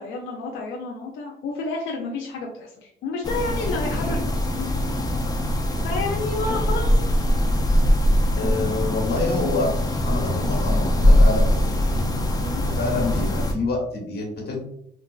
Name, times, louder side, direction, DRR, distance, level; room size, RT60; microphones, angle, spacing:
voice 1, 0.0-4.7 5.8-6.9 12.4-12.6, left 3 dB, 85° left, -1 dB, 0.5 m, -30 dB
sound 1, 3.2-13.5, equal, 20° left, 0.5 m, -21 dB
sound 2, 3.4-4.2 5.0-5.1 5.7-6.0 6.3-6.7 7.4-7.5 8.1-8.8 9.9-10.0 10.5-10.7 11.6-11.8 12.2-12.3 12.6-13.0, left 1 dB, 40° left, 1.0 m, -41 dB
voice 2, 8.3-12.1 12.6-14.6, left 3 dB, 55° left, 0 dB, 1.2 m, -27 dB
3.8 x 2.3 x 2.3 m, 0.75 s
cardioid pair, 90°, 20 cm